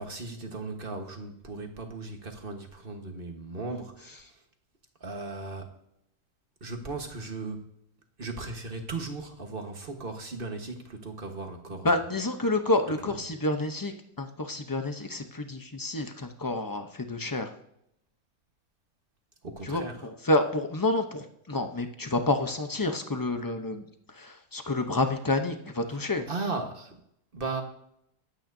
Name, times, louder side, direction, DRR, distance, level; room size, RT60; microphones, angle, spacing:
voice 1, 0.0-4.4 5.0-5.7 6.6-7.7 8.2-11.9 13.0-13.2 19.4-20.0 26.3-27.0 27.3-27.6, right 3 dB, 35° right, 4 dB, 1.4 m, -37 dB
voice 2, 11.8-17.5 19.6-23.9 24.1-26.3, left 2 dB, 30° left, 6 dB, 0.4 m, -29 dB
21.0 x 8.9 x 2.7 m, 0.76 s
omnidirectional pair, 1.7 m